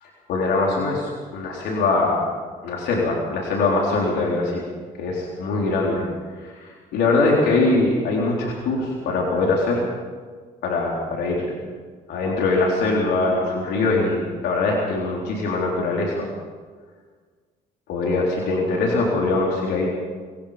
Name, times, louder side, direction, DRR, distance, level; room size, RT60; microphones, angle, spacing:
voice 1, 0.0-2.2 2.6-4.6 5.0-5.1 5.4-6.0 6.4-9.8 10.6-11.5 12.1-16.3 17.9-19.9, left 3 dB, 80° left, -2 dB, 4.1 m, -22 dB
26.5 x 21.0 x 5.2 m, 1.5 s
cardioid pair, 110°, 17 cm